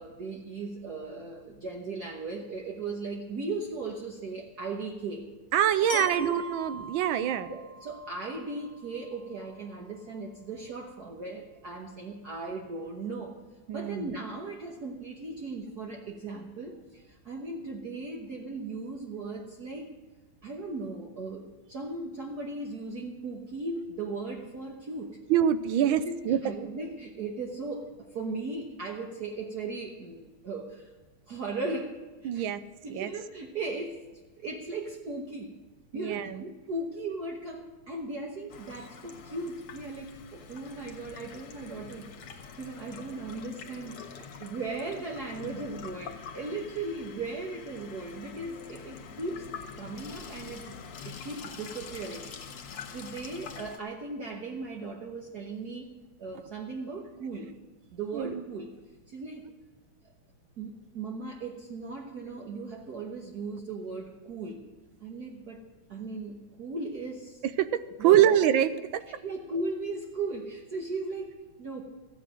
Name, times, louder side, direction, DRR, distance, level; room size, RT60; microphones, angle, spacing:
voice 1, 0.0-5.3 5.9-6.3 7.5-13.4 13.7-19.9 20.4-25.2 25.8-30.9 31.3-32.5 32.8-34.0 34.4-35.5 35.9-52.3 52.9-55.9 56.2-57.6 57.9-58.7 59.1-59.5 60.6-64.6 65.0-67.4 68.0-68.3 69.2-71.8, right 3 dB, 50° right, 0 dB, 1.5 m, -37 dB
voice 2, 5.5-7.5 13.7-14.1 25.3-26.4 32.2-32.6 32.9-33.1 35.9-36.4 58.1-58.3 67.6-69.0, right 10 dB, 75° right, 12 dB, 1.3 m, -25 dB
Glockenspiel, 5.9-9.9, left 1 dB, 65° left, 1.6 m, -42 dB
Water tap faucet / Sink (filling or washing), 38.5-53.8, left 6 dB, 85° left, 2.3 m, -45 dB
14.0 x 9.2 x 6.3 m, 1.2 s
omnidirectional pair, 2.4 m